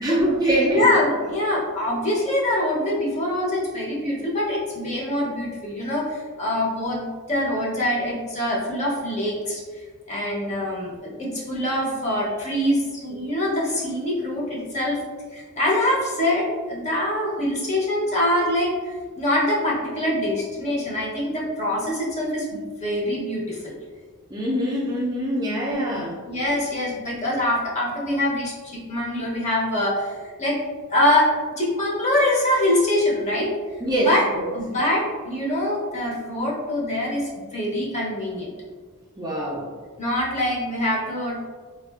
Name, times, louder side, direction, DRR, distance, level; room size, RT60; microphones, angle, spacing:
voice 1, 0.0-0.9 24.3-26.2 33.8-34.5 39.2-39.7, right 1 dB, 20° right, -4 dB, 0.4 m, -23 dB
voice 2, 0.7-9.6 10.1-15.0 15.3-23.7 25.7-25.8 26.3-30.6 30.9-31.3 31.6-33.5 34.0-34.2 34.5-38.5 40.0-41.4, left 1 dB, 30° left, -5 dB, 0.7 m, -24 dB
3.5 x 2.4 x 2.3 m, 1.5 s
head